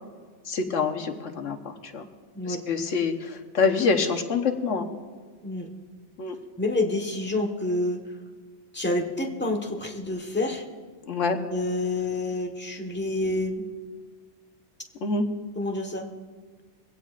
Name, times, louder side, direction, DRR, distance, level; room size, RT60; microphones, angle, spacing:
voice 1, 0.5-2.0 2.4-4.9 6.2-6.4 11.1-11.4 15.0-15.3, left 4 dB, 85° left, 4 dB, 1.4 m, -26 dB
voice 2, 6.6-8.0 8.7-10.6 11.5-13.6 15.5-16.1, left 2 dB, 10° left, 2 dB, 1.3 m, -28 dB
22.5 x 16.5 x 2.5 m, 1.5 s
omnidirectional pair, 1.2 m